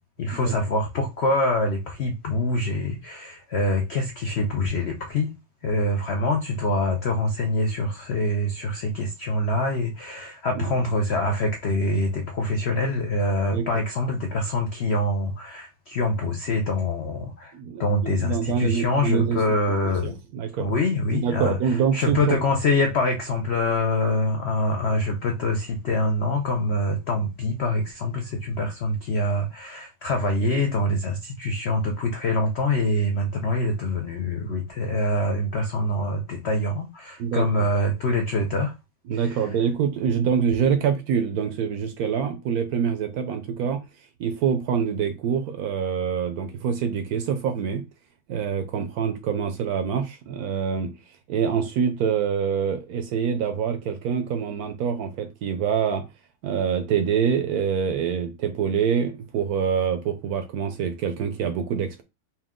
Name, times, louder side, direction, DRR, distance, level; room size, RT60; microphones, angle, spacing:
voice 1, 0.2-5.3 5.6-17.5 17.8-20.1 20.6-38.7 39.1-39.5, left 2 dB, 90° left, 0.5 m, -25 dB
voice 2, 17.5-19.4 19.8-20.7 21.1-22.4 37.2-37.4 39.1-43.8 44.2-47.8 48.3-50.9 51.3-56.0 56.4-62.0, right 7 dB, 70° right, 0.9 m, -25 dB
4.3 x 2.2 x 3.6 m
omnidirectional pair, 1.9 m